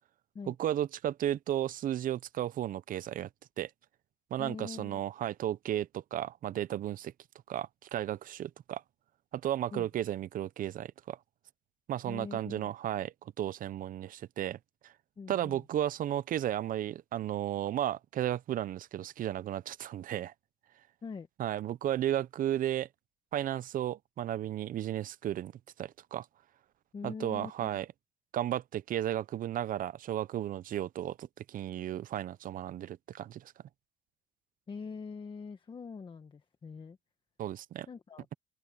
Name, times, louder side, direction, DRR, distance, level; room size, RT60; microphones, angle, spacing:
voice 1, 0.5-3.3 3.6-3.7 4.3-7.1 7.5-8.8 9.3-11.2 11.9-14.6 14.8-14.9 15.3-20.3 21.4-22.9 23.3-25.5 25.8-26.3 27.0-27.9 28.3-33.5 37.4-37.9, right 12 dB, 55° right, 0.7 m, -34 dB
voice 2, 4.4-5.0 9.7-9.9 12.1-12.7 15.2-15.6 21.0-21.3 26.9-27.7 34.7-37.0 37.9-38.3, left 5 dB, 30° left, 1.6 m, -43 dB
open air
cardioid pair, 110°, 17 cm